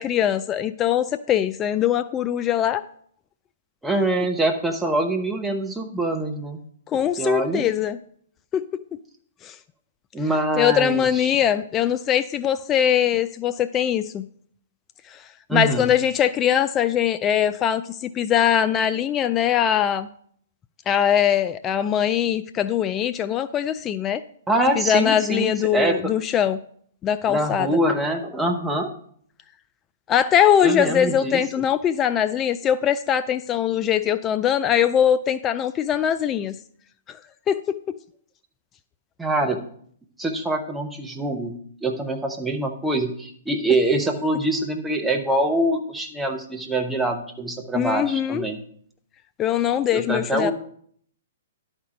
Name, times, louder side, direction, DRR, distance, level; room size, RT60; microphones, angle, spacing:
voice 1, 0.0-2.8 6.9-8.0 8.5-8.6 9.4-9.5 10.6-14.3 15.1-15.2 15.5-20.1 20.9-24.2 24.8-26.6 27.0-27.7 30.1-36.6 37.1-37.2 37.5-37.6 47.7-48.4 49.4-50.5, left 9 dB, 25° left, 12 dB, 0.3 m, -21 dB
voice 2, 3.8-6.6 7.2-7.7 10.1-11.4 15.5-15.9 24.5-26.1 27.3-28.9 30.6-31.4 39.2-39.6 40.2-41.5 41.8-48.6 49.9-50.5, right 2 dB, 5° right, 2 dB, 1.0 m, -24 dB
11.0 x 4.4 x 5.1 m, 0.62 s
figure-of-eight pair, 115°, 0 cm